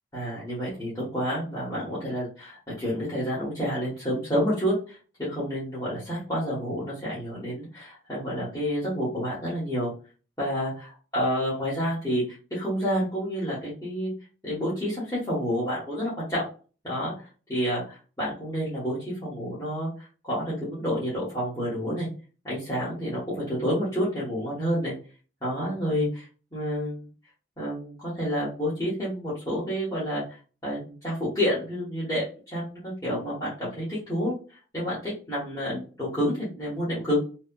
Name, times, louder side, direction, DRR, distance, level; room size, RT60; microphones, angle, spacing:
voice 1, 0.1-9.9 10.4-14.1 14.4-16.4 16.8-17.1 17.5-22.1 22.4-24.9 25.4-26.3 26.5-27.0 27.6-30.2 30.6-34.3 34.7-37.2, equal, 15° left, -10 dB, 1.2 m, -29 dB
3.2 x 2.9 x 2.3 m, 0.36 s
head